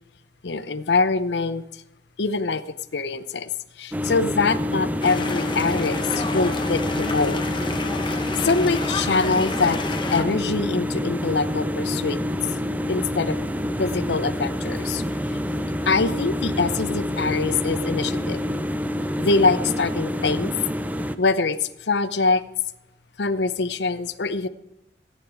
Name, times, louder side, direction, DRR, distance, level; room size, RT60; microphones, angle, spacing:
voice 1, 0.4-1.6 2.2-2.6 2.9-3.5 3.8-7.4 8.1-9.8 10.1-12.2 12.9-13.5 13.8-15.0 15.8-18.4 19.2-20.5 21.2-22.4 23.2-24.5, left 4 dB, 75° left, 13 dB, 0.7 m, -24 dB
sound 1, 3.9-21.2, left 1 dB, 10° right, 0.5 m, -27 dB
sound 2, 5.0-10.2, left 4 dB, 25° left, 0.9 m, -31 dB
14.5 x 9.1 x 4.7 m, 0.89 s
head